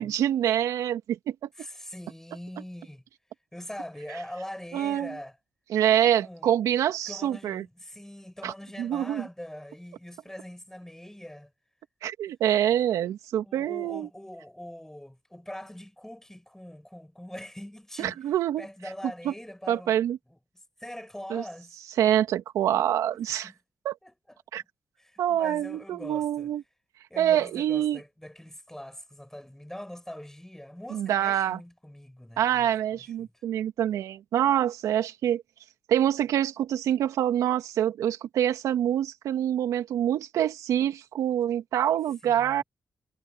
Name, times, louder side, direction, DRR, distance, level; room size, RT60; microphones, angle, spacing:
voice 1, 0.0-1.5 4.7-5.2 5.7-7.7 8.4-9.3 12.0-14.1 18.0-18.7 19.2-19.3 19.7-20.2 21.3-21.4 22.0-23.5 23.8-24.0 24.5-24.6 25.2-26.6 27.2-28.0 30.9-31.6 32.4-35.4 35.9-42.6, right 11 dB, 85° right, 2.4 m, -26 dB
voice 2, 1.6-3.0 3.5-5.3 6.2-6.5 7.1-11.5 13.4-18.2 18.6-20.4 20.8-21.7 23.4-23.5 24.0-24.1 24.5-24.7 25.0-26.5 27.1-32.7 42.2-42.6, left 1 dB, 10° left, 7.7 m, -42 dB
supercardioid pair, 45°, 6 cm